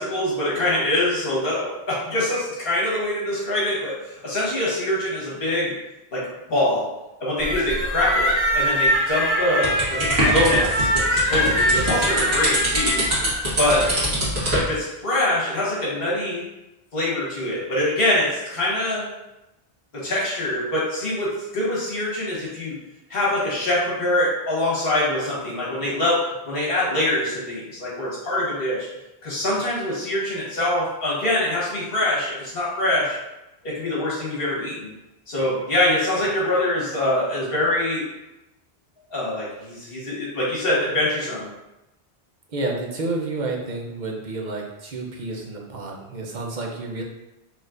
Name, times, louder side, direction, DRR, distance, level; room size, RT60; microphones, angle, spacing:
voice 1, 0.0-4.0 4.2-5.8 6.1-6.9 7.2-13.0 13.6-13.9 14.5-16.5 16.9-19.1 19.9-22.8 23.1-28.9 29.2-33.2 33.6-34.9 35.3-38.1 39.1-41.5, left 1 dB, 70° left, -6 dB, 1.6 m, -24 dB
sound 1, 7.4-14.0, equal, 15° left, 0.8 m, -23 dB
sound 2, 9.6-14.7, equal, 85° right, 1.6 m, -23 dB
voice 2, 42.5-47.0, right 2 dB, 50° right, 0 dB, 0.7 m, -30 dB
4.3 x 3.1 x 2.5 m, 0.93 s
omnidirectional pair, 1.0 m